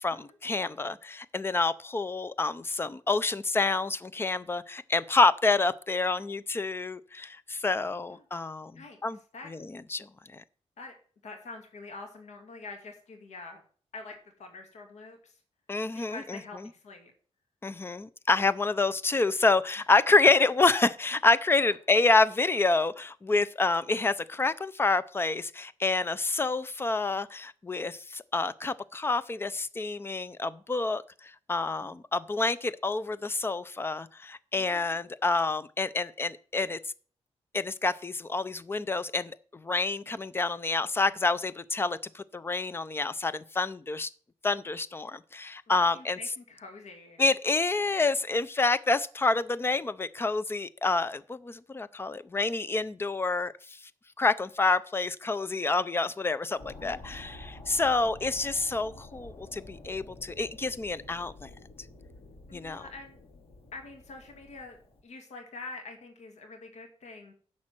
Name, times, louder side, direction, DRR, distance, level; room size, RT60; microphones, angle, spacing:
voice 1, 0.0-8.7 9.0-9.2 9.9-10.1 15.7-16.4 17.6-31.0 31.5-36.8 37.5-39.4 39.6-44.1 44.4-46.2 47.2-53.5 54.2-61.5 62.5-62.8, left 3 dB, 20° left, 0.5 m, -28 dB
voice 2, 8.7-9.5 10.8-10.9 11.2-13.6 13.9-15.4 15.9-17.1 21.1-21.2 41.1-41.6 45.7-47.2 56.8-57.2 62.5-63.2 63.7-64.8 65.0-67.3, left 3 dB, 85° left, 2.3 m, -46 dB
sound 1, 56.6-65.0, left 2 dB, 60° left, 2.8 m, -49 dB
11.0 x 4.2 x 7.5 m
wide cardioid pair, 150°, 11 cm